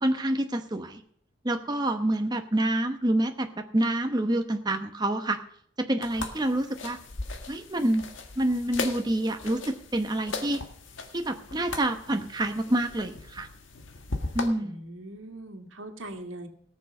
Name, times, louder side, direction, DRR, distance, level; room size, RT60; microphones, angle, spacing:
voice 1, 0.0-1.0 1.4-5.4 5.8-7.0 7.5-8.1 8.4-10.6 11.1-13.5 14.3-14.8, right 1 dB, 20° right, 5 dB, 1.0 m, -27 dB
sound 1, 6.0-14.5, left 3 dB, 80° left, 1.7 m, -38 dB
voice 2, 14.6-16.5, right 1 dB, 90° right, 5 dB, 2.0 m, -41 dB
18.0 x 7.1 x 6.5 m, 0.65 s
head